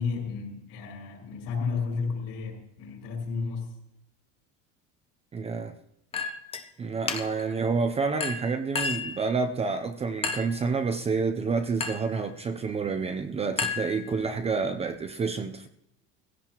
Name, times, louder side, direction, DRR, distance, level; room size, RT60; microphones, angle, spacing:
voice 1, 0.0-3.7, left 5 dB, 65° left, 5.2 m, -32 dB
voice 2, 5.3-5.8 6.8-15.7, right 4 dB, 20° right, 0.6 m, -29 dB
Chink clink, 6.1-6.7 7.1-7.5 8.2-9.2 10.2-10.6 11.8-12.1 13.6-14.4, left 5 dB, 15° left, 0.8 m, -32 dB
19.0 x 16.5 x 3.0 m
cardioid pair, 155°, 34 cm